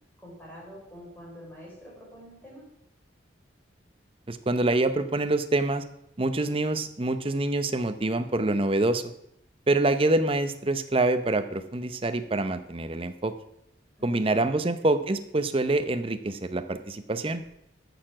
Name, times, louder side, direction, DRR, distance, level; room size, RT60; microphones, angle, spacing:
voice 1, 0.2-2.7 14.0-14.3 14.5-14.7, equal, 10° left, -4 dB, 4.0 m, -46 dB
voice 2, 4.3-5.8 6.2-9.0 9.7-13.3 14.0-17.4, right 2 dB, 30° right, 10 dB, 0.7 m, -26 dB
13.5 x 6.8 x 6.1 m, 0.79 s
head